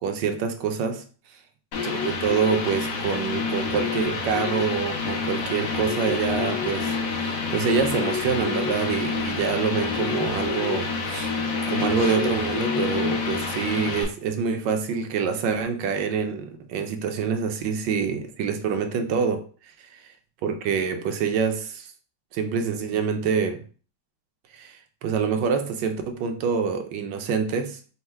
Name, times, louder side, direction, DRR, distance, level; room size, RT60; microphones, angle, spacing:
voice 1, 0.0-1.0 1.8-11.3 11.7-19.4 19.9-20.0 20.4-21.9 22.3-23.6 24.5-27.8, right 6 dB, 75° right, 6 dB, 1.3 m, -26 dB
sound 1, 1.7-14.0, left 4 dB, 80° left, 1.6 m, -27 dB
4.4 x 2.1 x 4.3 m, 0.40 s
omnidirectional pair, 2.0 m